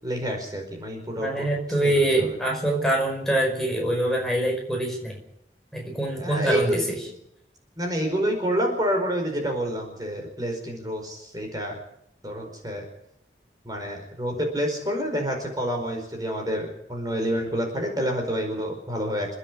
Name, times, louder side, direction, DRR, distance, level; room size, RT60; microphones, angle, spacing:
voice 1, 0.0-1.5 1.8-2.4 6.1-7.2 7.8-11.8 12.2-12.9 13.6-19.3, equal, 20° right, 2 dB, 4.9 m, -28 dB
voice 2, 1.2-5.2 5.7-7.0, right 1 dB, ahead, -1 dB, 5.2 m, -24 dB
29.5 x 9.9 x 9.8 m, 0.76 s
head